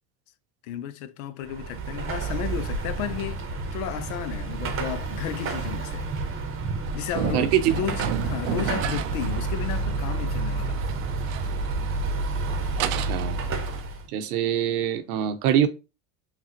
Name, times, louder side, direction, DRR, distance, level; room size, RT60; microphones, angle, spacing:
voice 1, 0.6-6.1 6.9-10.8, left 11 dB, 70° left, 0.6 m, -33 dB
Car passing by / Traffic noise roadway noise / Engine, 1.4-14.1, right 3 dB, 30° right, 0.8 m, -30 dB
sound 1, 6.8-13.8, right 13 dB, 60° right, 0.5 m, -34 dB
voice 2, 7.3-7.7 12.8-13.4 14.1-15.7, right 10 dB, 75° right, 0.8 m, -24 dB
5.8 x 2.3 x 2.8 m
supercardioid pair, 105°, 45 cm